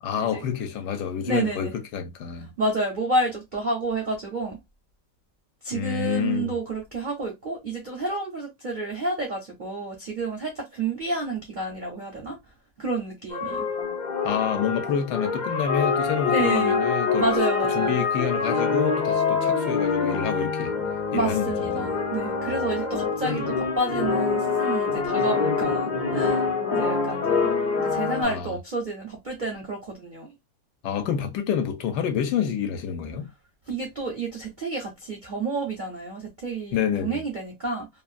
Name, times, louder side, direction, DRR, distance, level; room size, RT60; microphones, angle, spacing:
voice 1, 0.0-2.5 5.7-6.5 14.2-17.3 17.7-20.7 21.1-21.9 22.5-22.7 28.2-28.5 30.8-33.3 36.7-37.2, left 8 dB, 75° left, 1.1 m, -28 dB
voice 2, 1.2-1.7 2.6-4.6 5.6-12.4 12.8-13.7 16.3-16.8 17.2-18.0 21.1-26.4 26.7-30.3 33.7-37.9, right 2 dB, 60° right, 0.5 m, -30 dB
sound 1, 13.3-28.2, left 5 dB, 50° left, 0.5 m, -25 dB
2.9 x 2.2 x 2.4 m
omnidirectional pair, 1.9 m